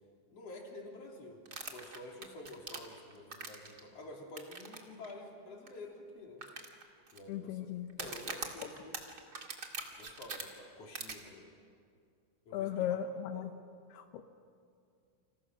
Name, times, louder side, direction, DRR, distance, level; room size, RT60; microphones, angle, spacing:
voice 1, 0.3-6.4 7.1-7.7 8.0-9.0 10.0-11.5 12.5-13.0 13.3-13.5, left 2 dB, 35° left, 0 dB, 3.6 m, -49 dB
sound 1, 1.5-3.8 4.4-4.8 5.0-5.1 5.7-5.8 6.4-7.2 7.9-10.4 10.9-11.1, right 4 dB, 80° right, 0.8 m, -42 dB
voice 2, 7.3-7.9 12.5-13.5 13.9-14.2, left 10 dB, 80° left, 7 dB, 2.3 m, -36 dB
30.0 x 26.5 x 6.2 m, 2.3 s
omnidirectional pair, 5.8 m